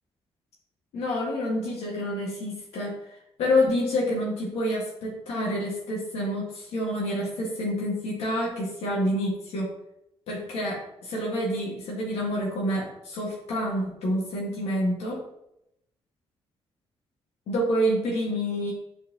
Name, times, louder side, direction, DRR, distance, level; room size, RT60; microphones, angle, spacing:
voice 1, 0.9-3.0 3.4-9.7 10.3-15.2 17.5-18.7, equal, 90° left, -4 dB, 1.8 m, -28 dB
7.1 x 4.5 x 2.9 m, 0.82 s
cardioid pair, 130°, 10 cm